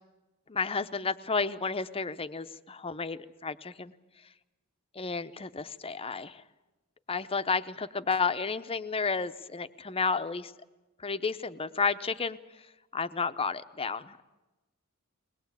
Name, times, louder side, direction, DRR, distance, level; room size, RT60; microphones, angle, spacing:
voice 1, 0.5-3.9 4.9-6.4 7.1-10.5 11.0-12.4 12.9-14.2, left 4 dB, 25° left, 11 dB, 0.8 m, -31 dB
21.5 x 20.5 x 8.3 m, 1.1 s
head